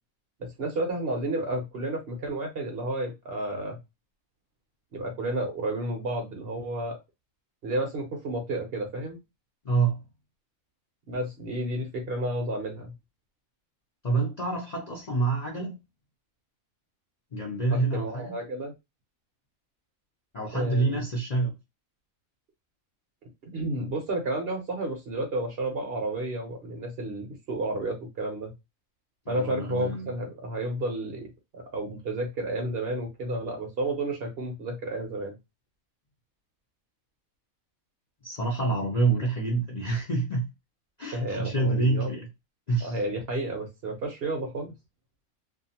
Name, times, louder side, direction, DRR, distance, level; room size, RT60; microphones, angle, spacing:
voice 1, 0.4-3.8 4.9-7.0 7.6-9.2 11.1-12.9 17.7-18.7 20.5-21.0 23.5-28.5 29.3-35.3 41.1-42.1 42.8-44.7, right 1 dB, 50° right, 0.8 m, -31 dB
voice 2, 9.6-10.0 14.0-15.8 17.3-18.3 20.3-21.5 29.3-30.1 38.2-40.4 41.0-42.3 42.7-43.0, right 3 dB, 45° left, 0.5 m, -27 dB
2.5 x 2.4 x 2.7 m
omnidirectional pair, 1.5 m